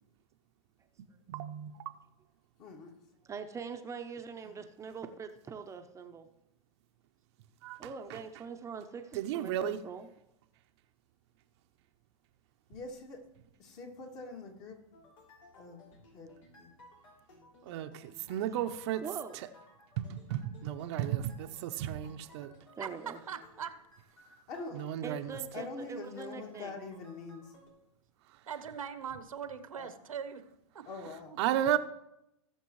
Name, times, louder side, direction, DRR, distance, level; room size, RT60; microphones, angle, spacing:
voice 1, 1.3-1.8 7.6-7.8 8.1-8.2 9.1-9.8 17.6-19.0 19.3-19.5 20.0-22.5 24.7-25.4 31.4-31.8, right 11 dB, 55° right, 0.7 m, -33 dB
voice 2, 2.6-2.9 4.4-4.5 12.7-13.2 13.6-14.8 15.6-15.9 16.1-16.7 24.5-24.8 25.5-27.5 29.8-29.9 30.9-31.6, left 3 dB, 40° left, 2.3 m, -44 dB
voice 3, 3.2-6.3 7.8-10.1 19.0-19.4 22.8-23.2 25.0-26.8, right 5 dB, 15° right, 0.7 m, -43 dB
sound 1, 14.9-27.7, left 1 dB, 75° left, 3.5 m, -59 dB
voice 4, 22.8-23.7 28.5-30.4 30.7-30.8 31.3-31.4, right 7 dB, 90° right, 1.1 m, -41 dB
19.0 x 6.7 x 3.1 m
hypercardioid pair, 120°, 17 cm